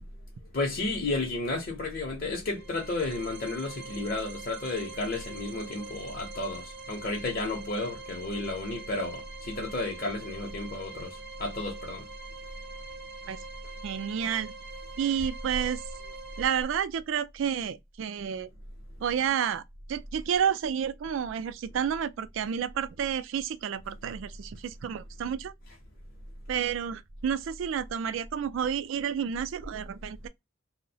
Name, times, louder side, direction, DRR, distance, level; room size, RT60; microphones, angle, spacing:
voice 1, 0.5-12.1, left 2 dB, 50° left, 0.6 m, -32 dB
sound 1, 2.5-16.6, right 3 dB, 50° right, 0.7 m, -44 dB
voice 2, 13.8-14.5 15.0-15.8 16.4-18.5 19.0-19.6 19.9-25.5 26.5-30.3, right 8 dB, 70° right, 0.3 m, -30 dB
2.7 x 2.0 x 2.6 m
head